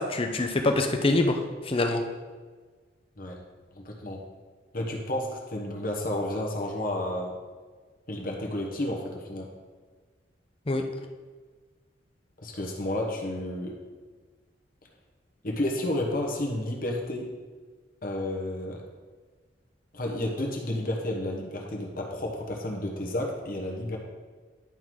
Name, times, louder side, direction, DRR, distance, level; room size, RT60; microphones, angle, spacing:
voice 1, 0.0-2.0 10.7-10.8, left 2 dB, 30° left, 5 dB, 0.6 m, -25 dB
voice 2, 3.8-4.2 4.7-7.3 8.1-9.5 12.4-13.8 15.4-17.3 18.0-18.8 19.9-24.0, left 1 dB, 50° left, 0 dB, 1.1 m, -31 dB
10.5 x 3.9 x 4.6 m, 1.4 s
head